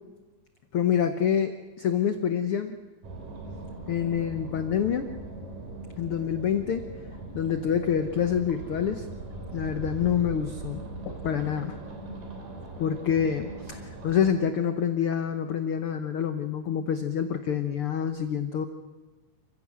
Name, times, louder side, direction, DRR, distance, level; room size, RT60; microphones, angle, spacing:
voice 1, 0.7-1.5 1.8-2.8 3.9-5.1 6.0-6.8 7.3-9.1 9.5-10.8 11.1-11.8 12.8-18.7, left 8 dB, 90° left, 8 dB, 1.2 m, -27 dB
sound 1, 3.0-14.3, right 3 dB, 75° right, 5.1 m, -40 dB
28.0 x 15.5 x 7.5 m, 1.2 s
omnidirectional pair, 3.9 m